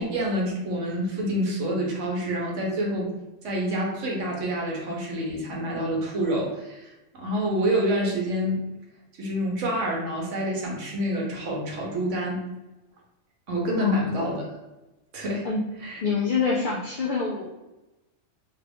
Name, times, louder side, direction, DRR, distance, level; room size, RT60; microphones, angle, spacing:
voice 1, 0.0-3.1 3.4-8.6 9.2-12.4 13.5-14.5 15.1-15.5 15.8-16.0, equal, 65° right, -2 dB, 1.1 m, -27 dB
voice 2, 13.8-14.1 15.4-15.6 16.0-17.5, left 5 dB, 65° left, -3 dB, 0.5 m, -26 dB
2.9 x 2.4 x 3.3 m, 1.0 s
omnidirectional pair, 1.4 m